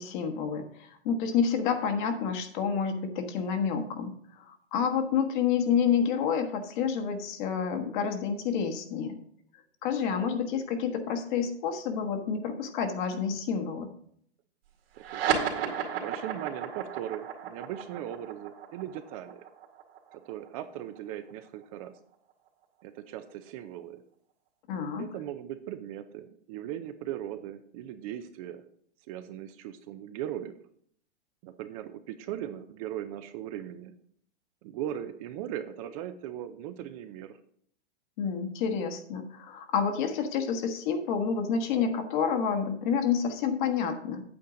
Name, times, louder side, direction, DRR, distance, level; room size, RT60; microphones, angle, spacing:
voice 1, 0.0-9.2 9.8-13.9 24.7-25.1 38.2-44.2, left 6 dB, 45° left, 6 dB, 1.4 m, -29 dB
voice 2, 14.9-19.4 20.1-22.0 22.8-24.0 25.0-28.6 29.1-30.6 31.4-33.9 34.6-37.4, right 11 dB, 35° right, 10 dB, 0.6 m, -39 dB
sound 1, 15.0-21.8, right 8 dB, 60° right, 2.2 m, -34 dB
8.5 x 8.5 x 3.8 m, 0.64 s
hypercardioid pair, 130°, 33 cm